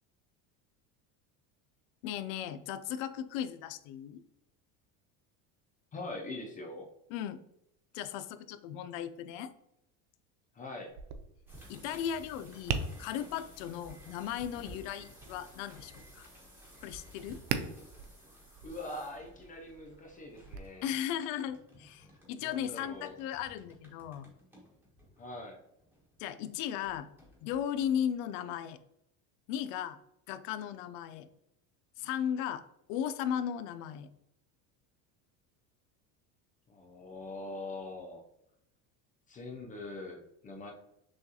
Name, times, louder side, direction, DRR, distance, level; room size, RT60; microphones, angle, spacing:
voice 1, 2.0-4.2 7.1-7.4 7.9-9.5 11.7-16.3 16.8-17.4 20.8-24.3 26.2-27.1 27.4-28.8 29.5-30.0 30.3-31.3 32.0-32.6 32.9-34.1, left 9 dB, 75° left, 12 dB, 0.5 m, -36 dB
voice 2, 5.9-6.9 10.5-10.9 18.6-20.9 22.4-23.1 25.2-25.6 36.7-38.2 39.3-40.7, left 2 dB, 20° left, 2 dB, 0.4 m, -43 dB
Tap, 10.9-20.6, right 7 dB, 75° right, 0.6 m, -42 dB
sound 1, 11.5-26.3 26.8-28.3, equal, 5° right, 1.2 m, -55 dB
6.3 x 2.3 x 2.8 m, 0.81 s
cardioid pair, 140°, 39 cm